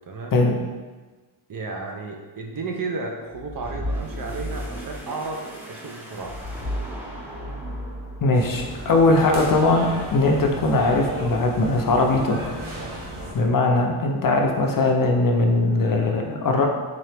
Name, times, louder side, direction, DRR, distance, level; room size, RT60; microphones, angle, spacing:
voice 1, 0.1-0.4 1.5-6.4, right 3 dB, 45° right, 2 dB, 0.5 m, -33 dB
sound 1, 3.3-8.6, equal, 5° right, 0.6 m, -33 dB
voice 2, 8.2-12.6 13.3-16.7, left 2 dB, 45° left, 1 dB, 0.5 m, -20 dB
sound 2, 8.3-13.3, right 1 dB, 80° right, 1.0 m, -34 dB
3.7 x 2.9 x 3.3 m, 1.3 s
cardioid pair, 100°, 48 cm